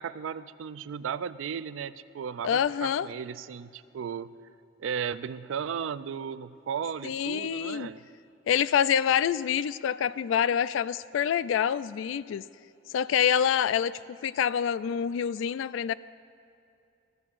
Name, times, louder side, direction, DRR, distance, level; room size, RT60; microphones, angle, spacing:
voice 1, 0.0-4.3 4.8-8.0, right 7 dB, 90° right, 15 dB, 0.4 m, -35 dB
voice 2, 2.4-3.1 7.0-7.9 8.5-12.4 12.9-13.9 14.2-15.9, left 8 dB, 80° left, 18 dB, 0.3 m, -26 dB
15.5 x 15.0 x 2.5 m, 2.6 s
head